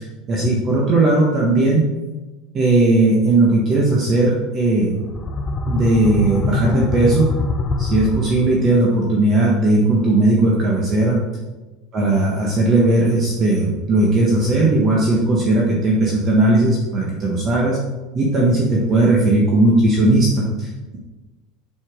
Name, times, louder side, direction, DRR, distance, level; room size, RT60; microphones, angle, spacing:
voice 1, 0.3-1.8 2.5-5.0 5.7-7.3 7.8-11.2 11.9-17.8 18.1-21.0, right 2 dB, 25° right, -3 dB, 1.4 m, -17 dB
sound 1, 5.0-8.8, left 3 dB, 20° left, 0.6 m, -24 dB
7.9 x 7.0 x 5.1 m, 1.2 s
supercardioid pair, 165°, 0 cm